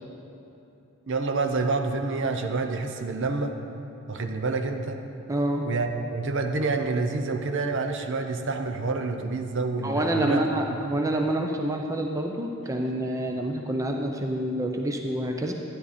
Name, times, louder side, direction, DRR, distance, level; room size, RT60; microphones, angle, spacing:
voice 1, 1.1-3.5 4.1-5.0 5.7-10.4, right 3 dB, 55° right, 5 dB, 0.8 m, -28 dB
voice 2, 5.3-5.7 9.8-15.5, right 1 dB, 15° right, 2 dB, 0.6 m, -27 dB
12.5 x 10.5 x 4.2 m, 2.8 s
head